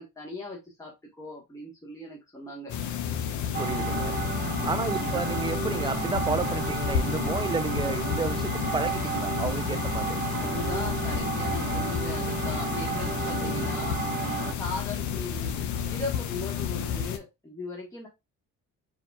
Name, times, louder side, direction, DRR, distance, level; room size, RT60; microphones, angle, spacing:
voice 1, 0.0-2.9 10.3-14.2 14.5-18.1, left 2 dB, 10° left, 1.4 m, -39 dB
sound 1, 2.7-17.2, left 8 dB, 65° left, 0.9 m, -31 dB
sound 2, 3.5-14.5, right 6 dB, 30° right, 0.8 m, -32 dB
voice 2, 3.6-4.3 4.6-10.2 13.4-13.8, right 4 dB, 15° right, 0.4 m, -32 dB
4.8 x 4.7 x 2.3 m
cardioid pair, 140°, 31 cm